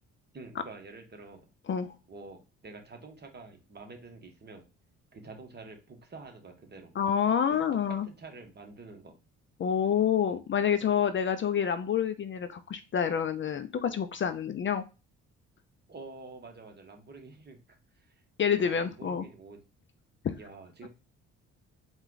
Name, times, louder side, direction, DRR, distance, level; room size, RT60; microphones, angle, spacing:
voice 1, 0.3-1.5 2.1-4.6 5.1-6.9 7.5-7.6 7.9-9.1 15.9-18.2 18.6-19.6 20.4-20.9, right 3 dB, 35° right, 3 dB, 1.2 m, -48 dB
voice 2, 7.0-8.1 9.6-14.8 18.4-19.2 20.2-20.3, left 8 dB, 40° left, 10 dB, 0.5 m, -28 dB
4.2 x 2.3 x 3.9 m, 0.30 s
cardioid pair, 90°, 30 cm